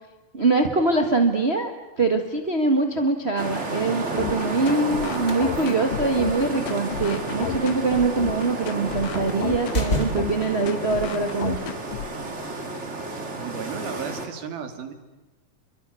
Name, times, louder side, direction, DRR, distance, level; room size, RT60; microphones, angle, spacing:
voice 1, 0.3-1.7 2.0-11.6, right 3 dB, 50° right, 5 dB, 0.7 m, -23 dB
sound 1, 3.4-14.3, right 2 dB, 20° right, 2.4 m, -31 dB
sound 2, 4.2-12.2, left 11 dB, 70° left, 2.6 m, -32 dB
sound 3, 5.2-10.5, left 1 dB, 20° left, 3.5 m, -33 dB
voice 2, 13.4-14.9, right 7 dB, 80° right, 7 dB, 4.3 m, -34 dB
29.5 x 23.5 x 8.4 m, 1.1 s
omnidirectional pair, 4.2 m